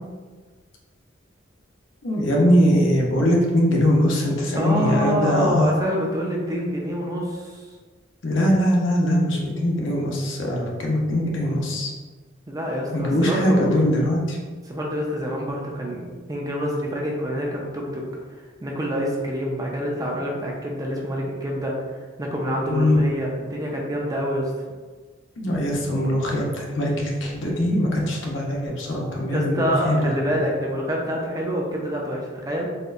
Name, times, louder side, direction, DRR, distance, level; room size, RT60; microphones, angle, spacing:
voice 1, 2.0-5.7 8.2-11.9 12.9-14.4 22.7-23.0 25.4-30.4, equal, 70° left, -2 dB, 0.7 m, -21 dB
voice 2, 4.5-7.5 12.5-13.7 14.7-18.0 18.6-21.8 22.2-24.5 29.3-32.7, equal, 20° right, -1 dB, 0.5 m, -26 dB
4.2 x 2.1 x 2.5 m, 1.4 s
head